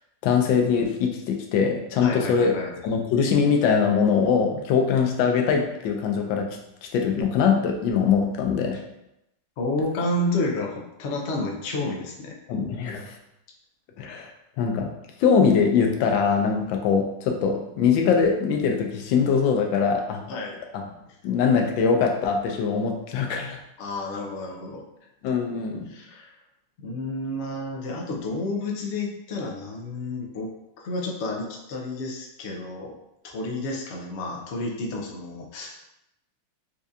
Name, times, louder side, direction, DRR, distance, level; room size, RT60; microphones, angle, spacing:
voice 1, 0.2-2.5 2.8-6.5 6.9-8.8 12.5-13.2 14.0-14.3 14.6-14.9 15.2-20.2 20.7-20.8 21.2-23.6 25.2-25.9, left 6 dB, 90° left, 3 dB, 1.3 m, -22 dB
voice 2, 2.0-2.8 9.6-12.3 20.3-20.5 23.8-24.8 25.9-26.3 26.8-30.5 30.8-32.9 33.2-35.8, left 2 dB, 70° left, 0 dB, 0.6 m, -30 dB
4.4 x 2.4 x 2.6 m, 0.86 s
omnidirectional pair, 2.0 m